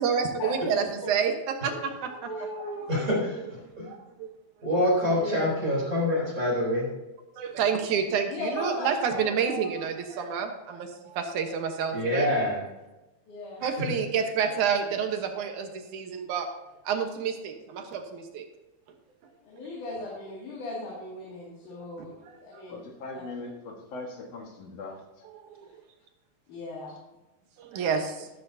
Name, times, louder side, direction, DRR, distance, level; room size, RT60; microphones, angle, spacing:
voice 1, 0.0-2.3 3.8-4.3 7.3-12.3 13.6-16.5 16.8-18.5 21.7-21.8 22.3-22.4 25.4-25.7 27.6-28.3, right 6 dB, 80° right, 5 dB, 2.6 m, -29 dB
voice 2, 2.2-3.2 5.1-5.6 8.3-9.3 13.3-13.6 19.4-22.8 23.1-23.2 26.5-26.9, left 2 dB, 85° left, -6 dB, 4.0 m, -37 dB
voice 3, 2.9-3.9 4.6-6.9 11.9-12.6 13.6-13.9, left 1 dB, 25° right, -4 dB, 4.1 m, -26 dB
voice 4, 22.7-25.3 26.9-27.0, left 3 dB, 60° left, 1 dB, 2.7 m, -40 dB
13.0 x 12.5 x 2.8 m, 1.0 s
omnidirectional pair, 3.5 m